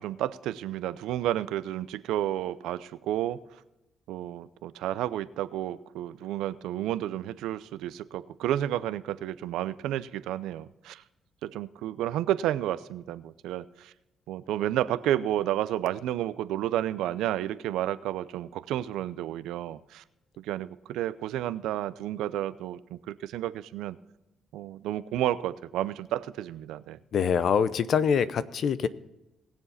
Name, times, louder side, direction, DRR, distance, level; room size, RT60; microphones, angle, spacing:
voice 1, 0.0-3.4 4.1-11.0 11.4-13.9 14.3-20.0 20.4-24.0 24.5-27.0, right 12 dB, 90° right, 15 dB, 0.5 m, -31 dB
voice 2, 27.1-28.9, left 7 dB, 60° left, 15 dB, 0.7 m, -24 dB
20.0 x 7.3 x 4.2 m, 0.97 s
cardioid pair, 90°, 0 cm